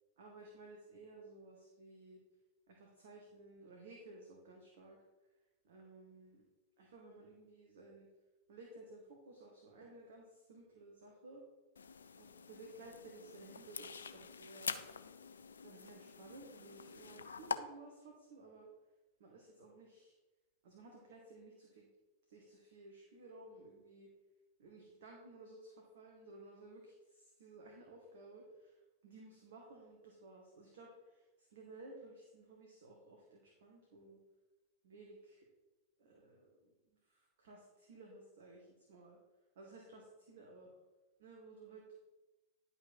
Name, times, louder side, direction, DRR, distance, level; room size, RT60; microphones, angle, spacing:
voice 1, 0.2-2.2 2.7-5.0 5.6-6.4 6.8-8.1 8.5-11.4 12.2-14.8 15.6-18.7 19.2-20.1 20.6-21.9 22.3-24.1 24.6-34.2 34.8-35.5 36.0-36.7 37.0-39.2 39.5-40.7 41.2-42.0, right 2 dB, 60° right, -1 dB, 1.6 m, -56 dB
breaking of a branch, 11.8-17.6, left 6 dB, 70° left, 0.5 m, -46 dB
11.0 x 5.6 x 4.4 m, 1.1 s
figure-of-eight pair, 90°, 0 cm